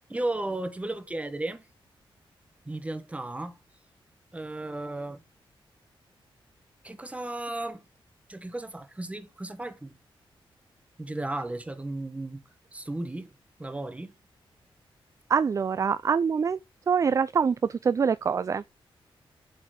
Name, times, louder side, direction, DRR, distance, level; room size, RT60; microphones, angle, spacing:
voice 1, 0.1-1.7 2.7-3.6 4.3-5.2 6.8-7.8 8.3-10.0 11.0-12.4 12.7-13.3 13.6-14.1, right 2 dB, 15° right, 1.2 m, -34 dB
voice 2, 15.3-16.6 16.9-18.8, right 6 dB, 35° right, 0.3 m, -25 dB
8.0 x 4.1 x 4.8 m
wide cardioid pair, 120°, 9 cm